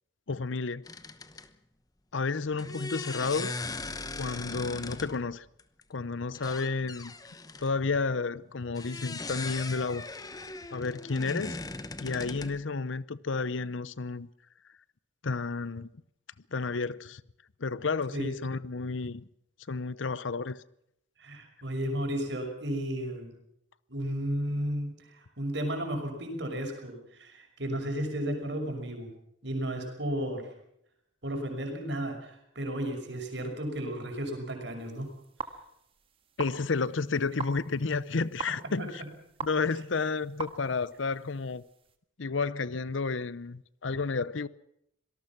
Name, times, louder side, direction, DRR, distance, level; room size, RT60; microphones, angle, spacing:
voice 1, 0.3-0.8 2.1-3.6 4.2-5.4 5.9-7.1 7.6-10.1 10.7-11.6 12.0-14.3 15.2-15.9 16.5-17.2 17.6-19.2 19.7-20.6 36.4-39.0 39.4-41.6 42.2-44.5, left 4 dB, 85° left, 0.7 m, -31 dB
sound 1, 0.8-1.5 2.6-5.2 5.6-5.8 6.3-7.7 8.8-12.6, left 3 dB, 20° left, 1.0 m, -39 dB
voice 2, 21.2-23.3 23.9-29.1 29.4-30.5 31.2-35.1 38.6-39.1, right 1 dB, 65° right, 5.9 m, -34 dB
sound 2, 34.8-42.0, right 5 dB, 30° right, 1.6 m, -44 dB
25.5 x 18.5 x 6.0 m
head